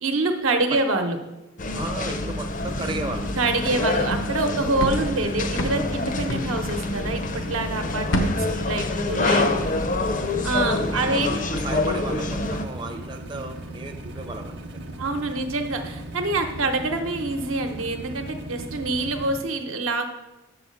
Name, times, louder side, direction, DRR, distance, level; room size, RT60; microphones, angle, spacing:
voice 1, 0.0-1.2 3.4-9.6 10.4-11.4 15.0-20.1, right 2 dB, 85° right, 5 dB, 0.9 m, -26 dB
sound 1, 1.6-12.7, left 2 dB, 40° left, 0.5 m, -27 dB
voice 2, 1.7-3.3 9.2-10.2 10.9-14.8, right 2 dB, 20° right, 3 dB, 0.4 m, -35 dB
sound 2, 2.6-19.4, right 1 dB, 55° right, 0.7 m, -37 dB
sound 3, 4.1-7.4 7.7-9.7 10.0-10.3, equal, 85° left, 0.9 m, -30 dB
6.6 x 4.8 x 6.3 m, 1.0 s
head